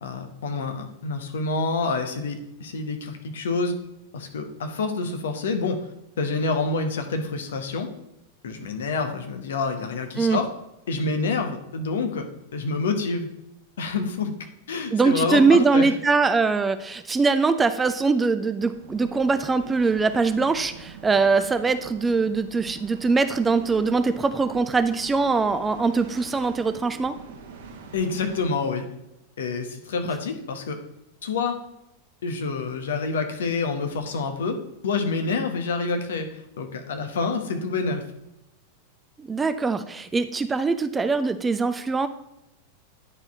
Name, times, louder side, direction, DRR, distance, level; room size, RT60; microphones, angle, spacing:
voice 1, 0.0-3.7 4.1-5.9 6.2-7.9 8.4-10.5 10.9-12.3 12.5-13.3 13.8-14.3 14.7-15.9 27.9-28.9 29.4-30.8 31.2-31.5 32.2-38.0, left 4 dB, 60° left, 6 dB, 1.1 m, -27 dB
voice 2, 14.9-27.2 39.2-42.1, right 4 dB, 15° right, 11 dB, 0.4 m, -22 dB
sound 1, 18.3-28.5, right 5 dB, 55° right, 1.2 m, -44 dB
9.7 x 4.4 x 4.3 m, 0.86 s
figure-of-eight pair, 90°, 0 cm